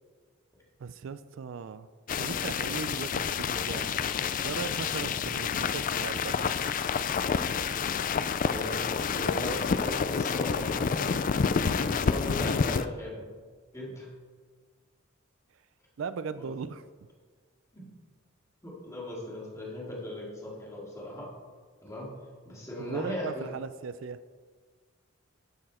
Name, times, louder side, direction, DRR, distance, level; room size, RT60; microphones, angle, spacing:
voice 1, 0.8-1.9 2.2-4.0 4.4-6.4 16.0-16.8 22.8-24.2, right 5 dB, 70° right, 13 dB, 0.4 m, -38 dB
sound 1, 2.1-12.9, left 6 dB, 45° left, 0.4 m, -29 dB
voice 2, 8.5-11.2 11.7-13.2 13.7-14.1 16.3-16.5 17.7-17.9 18.6-21.3 21.8-22.1 22.4-23.5, left 1 dB, 15° left, -4 dB, 2.5 m, -38 dB
12.0 x 6.8 x 4.3 m, 1.5 s
head